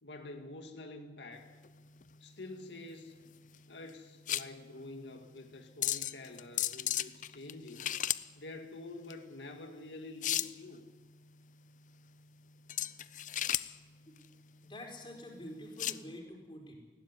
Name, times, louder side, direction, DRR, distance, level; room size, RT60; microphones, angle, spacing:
voice 1, 0.0-1.6 2.2-3.2 3.7-8.0 8.4-10.9, left 2 dB, 90° left, 5 dB, 2.0 m, -47 dB
sound 1, 1.3-16.0, left 12 dB, 45° left, 0.6 m, -38 dB
voice 2, 14.6-16.8, left 1 dB, 25° left, 2 dB, 4.5 m, -47 dB
19.5 x 16.5 x 9.9 m, 1.3 s
head